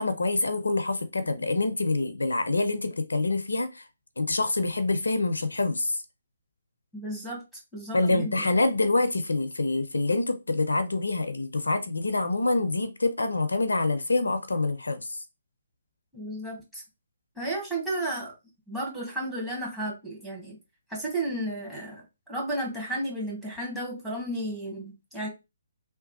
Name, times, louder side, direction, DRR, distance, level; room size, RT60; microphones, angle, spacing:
voice 1, 0.0-3.8 4.2-6.0 7.9-15.2, left 2 dB, 75° left, 0.4 m, -26 dB
voice 2, 6.9-7.4 7.7-8.5 16.1-16.8 17.4-18.3 18.7-20.6 20.9-22.0 22.3-25.3, right 1 dB, 5° right, 1.2 m, -33 dB
3.0 x 2.3 x 2.6 m
figure-of-eight pair, 135°, 0 cm